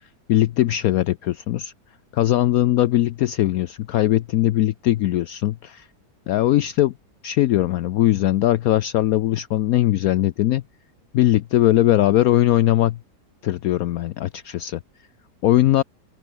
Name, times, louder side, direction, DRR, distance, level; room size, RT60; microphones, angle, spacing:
voice 1, 0.3-1.7 2.1-5.9 6.3-6.9 7.2-10.6 11.1-13.0 13.4-14.8 15.4-15.8, left 14 dB, 70° left, 1.0 m, -20 dB
open air
omnidirectional pair, 1.7 m